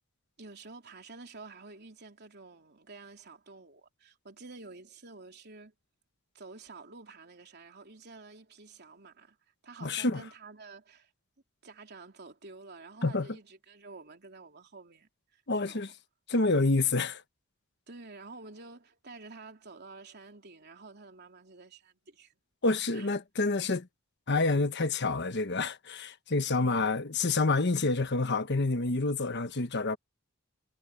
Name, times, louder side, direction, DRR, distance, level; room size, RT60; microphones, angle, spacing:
voice 1, 0.4-5.7 6.3-9.4 9.6-11.1 11.6-15.9 17.9-22.4 22.9-23.1 26.5-26.9, right 3 dB, 50° right, 3.5 m, -50 dB
voice 2, 9.8-10.2 13.0-13.3 15.5-15.9 16.3-17.2 22.6-23.9 24.3-30.0, left 3 dB, 50° left, 1.2 m, -28 dB
head